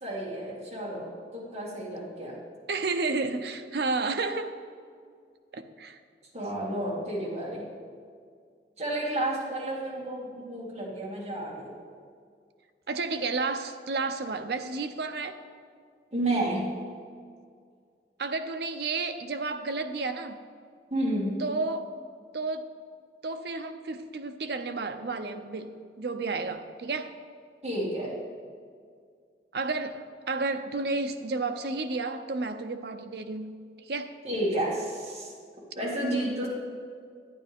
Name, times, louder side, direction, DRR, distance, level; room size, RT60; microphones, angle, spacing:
voice 1, 0.0-2.4 6.3-7.6 8.8-11.7 16.1-16.6 20.9-21.3 27.6-28.1 34.2-35.3 35.8-36.5, right 1 dB, 35° right, -6 dB, 2.3 m, -31 dB
voice 2, 2.7-4.5 5.5-6.0 12.9-15.4 18.2-20.4 21.4-22.0 22.3-22.7 23.2-27.1 29.5-34.1, right 3 dB, 70° right, 8 dB, 0.6 m, -31 dB
11.5 x 9.6 x 3.6 m, 2.1 s
head